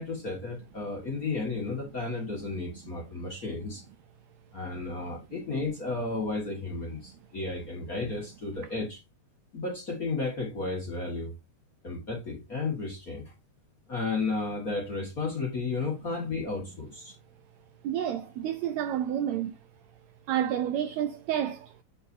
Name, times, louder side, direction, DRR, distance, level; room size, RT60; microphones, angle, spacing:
voice 1, 0.0-3.8 4.5-9.0 9.5-11.3 11.8-13.3 13.9-17.1, left 3 dB, 40° left, 1.5 m, -33 dB
voice 2, 17.8-19.6 20.3-21.8, right 10 dB, 80° right, 1.6 m, -30 dB
8.6 x 5.5 x 2.6 m
omnidirectional pair, 3.6 m